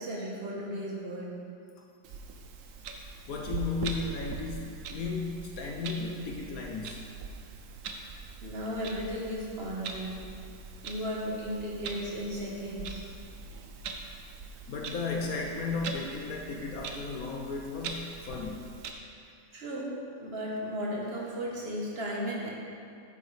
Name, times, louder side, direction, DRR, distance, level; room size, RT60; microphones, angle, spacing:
voice 1, 0.0-1.4 8.4-10.3 10.8-13.0 19.5-22.5, equal, 35° right, -4 dB, 1.4 m, -35 dB
Clock, 2.0-18.9, right 4 dB, 90° right, 0.7 m, -42 dB
voice 2, 3.3-7.1 13.8-14.0 14.7-18.7, left 4 dB, 65° left, 0 dB, 0.8 m, -35 dB
9.1 x 7.1 x 3.3 m, 2.4 s
omnidirectional pair, 2.1 m